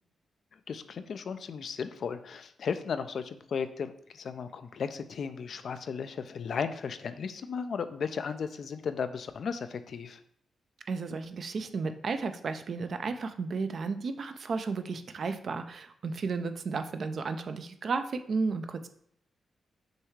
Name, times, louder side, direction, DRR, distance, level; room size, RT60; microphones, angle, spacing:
voice 1, 0.7-10.2, left 6 dB, 65° left, 11 dB, 0.3 m, -35 dB
voice 2, 10.9-18.9, right 4 dB, 60° right, 8 dB, 0.4 m, -33 dB
6.3 x 2.3 x 3.1 m, 0.67 s
supercardioid pair, 55°, 0 cm